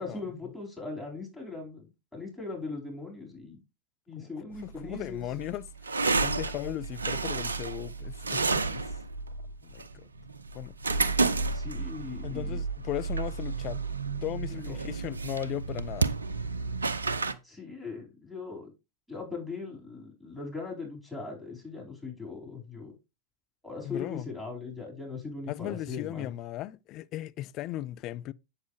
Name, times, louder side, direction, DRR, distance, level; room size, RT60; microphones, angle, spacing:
voice 1, 0.0-3.6 4.1-5.3 11.5-12.6 14.5-14.8 17.4-18.7 19.1-22.9 23.6-26.3, left 4 dB, ahead, 4.4 m, -39 dB
sound 1, 4.5-17.3, right 4 dB, 75° right, 0.5 m, -31 dB
voice 2, 4.6-8.9 9.6-10.1 10.5-10.8 12.2-13.8 14.2-16.1 23.8-24.3 25.5-28.3, left 15 dB, 35° left, 0.4 m, -37 dB
8.1 x 7.2 x 3.2 m
figure-of-eight pair, 90°, 0 cm